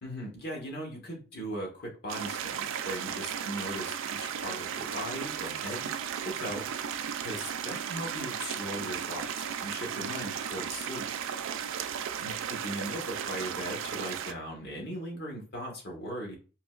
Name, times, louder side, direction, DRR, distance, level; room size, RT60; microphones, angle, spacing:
voice 1, 0.0-5.9 6.2-6.6 7.2-11.0 12.2-16.4, equal, 50° left, -2 dB, 1.3 m, -38 dB
sound 1, 2.1-14.3, right 8 dB, 60° right, 0.3 m, -35 dB
3.8 x 2.8 x 2.4 m, 0.36 s
head